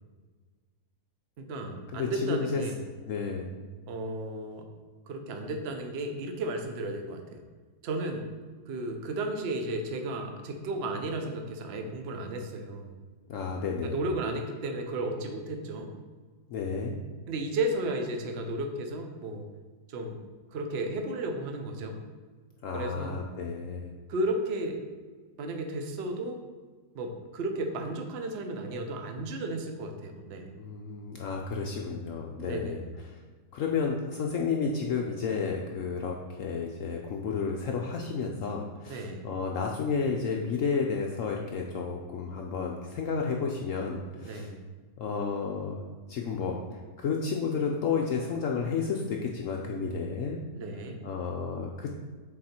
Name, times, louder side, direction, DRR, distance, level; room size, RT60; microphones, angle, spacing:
voice 1, 1.4-2.8 3.9-4.7 5.1-7.4 7.8-8.3 8.7-12.9 13.8-15.9 17.3-19.5 19.9-20.2 20.5-22.0 22.7-23.2 24.1-24.8 25.4-26.4 26.9-30.5 32.4-32.8 38.9-39.2 44.2-44.6 50.5-51.0, right 2 dB, 55° right, 4 dB, 0.7 m, -34 dB
voice 2, 1.9-2.6 3.1-3.5 13.3-14.0 16.5-17.0 22.6-23.9 30.6-32.8 33.5-44.5 45.0-45.8 46.1-50.4 51.0-51.9, left 5 dB, 70° left, 0 dB, 0.8 m, -31 dB
6.3 x 4.1 x 4.3 m, 1.4 s
omnidirectional pair, 1.8 m